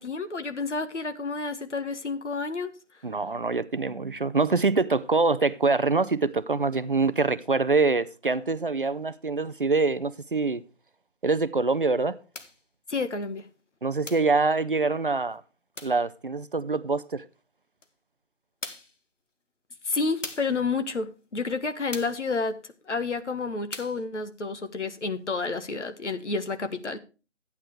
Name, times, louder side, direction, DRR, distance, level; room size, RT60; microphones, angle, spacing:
voice 1, 0.0-2.7 12.9-13.5 19.8-27.0, left 4 dB, 70° left, 1.5 m, -30 dB
voice 2, 3.0-10.6 11.2-12.2 13.8-15.4 15.8-17.2, right 3 dB, 45° right, 0.5 m, -25 dB
sound 1, 12.3-12.6 14.1-14.4 15.8-16.0 17.8-17.9 18.6-19.0 20.2-20.6 21.9-22.3 23.7-24.0, left 2 dB, 85° left, 1.8 m, -40 dB
13.0 x 9.4 x 3.2 m
figure-of-eight pair, 165°, 37 cm